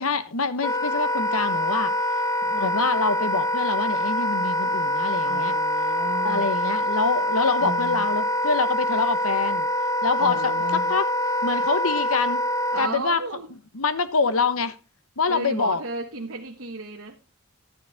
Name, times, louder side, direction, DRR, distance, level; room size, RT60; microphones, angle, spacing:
voice 1, 0.0-1.9 2.4-5.5 6.2-9.7 10.0-10.5 10.9-11.1 11.4-12.4 12.8-13.2 13.7-14.8 15.2-15.8, left 4 dB, 70° left, 1.1 m, -25 dB
Wind instrument woodwind instrument, 0.6-12.9, left 1 dB, 15° left, 0.7 m, -25 dB
voice 2, 5.2-6.5 7.6-8.0 10.2-10.9 12.7-13.5 15.3-17.2, right 3 dB, 60° right, 1.2 m, -34 dB
12.0 x 9.7 x 3.5 m
head